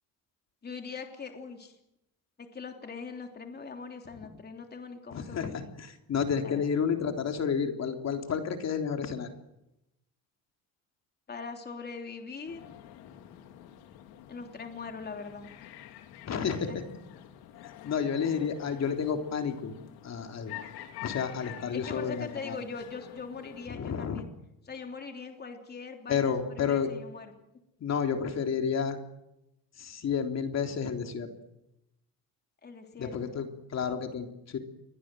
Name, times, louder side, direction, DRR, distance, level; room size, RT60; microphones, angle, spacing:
voice 1, 0.6-1.8 2.4-5.7 6.4-6.8 11.3-12.7 14.3-15.5 16.4-16.8 21.7-24.3 24.6-27.3 32.6-33.1, left 5 dB, 25° left, 4 dB, 3.3 m, -42 dB
voice 2, 5.1-9.3 16.3-16.8 17.8-19.7 20.0-20.6 21.0-22.6 23.7-24.2 26.1-26.9 27.8-29.0 29.8-31.3 33.0-34.6, left 6 dB, 45° left, 5 dB, 3.6 m, -31 dB
sound 1, 12.5-23.7, left 12 dB, 75° left, 3.4 m, -47 dB
29.0 x 22.5 x 7.8 m, 0.88 s
cardioid pair, 115°, 38 cm